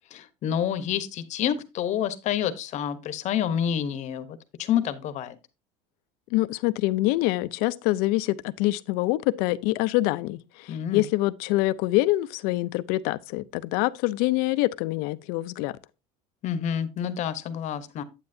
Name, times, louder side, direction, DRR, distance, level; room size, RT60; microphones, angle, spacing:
voice 1, 0.1-5.4 10.7-11.0 16.4-18.0, left 9 dB, 45° left, 1.0 m, -28 dB
voice 2, 6.3-15.7, left 18 dB, 70° left, 0.6 m, -25 dB
9.7 x 8.3 x 2.7 m
cardioid pair, 140°, 16 cm